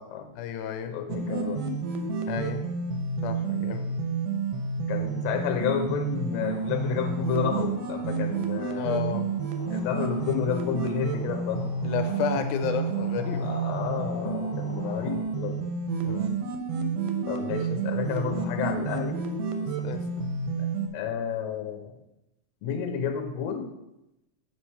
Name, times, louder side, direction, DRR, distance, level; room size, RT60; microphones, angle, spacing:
voice 1, 0.4-1.0 2.3-2.6 3.2-3.9 8.8-9.3 11.8-13.6 16.0-16.4 19.5-20.3, left 8 dB, 90° left, 8 dB, 2.1 m, -32 dB
voice 2, 0.9-1.6 4.9-9.1 9.7-11.7 13.4-15.6 17.3-19.2 20.9-22.0 22.6-23.7, left 8 dB, 70° left, 3 dB, 1.9 m, -31 dB
sound 1, 1.1-20.9, right 4 dB, 75° right, 1.4 m, -30 dB
sound 2, 6.4-15.2, left 1 dB, 45° left, 1.6 m, -46 dB
8.5 x 3.1 x 5.5 m, 0.91 s
omnidirectional pair, 3.5 m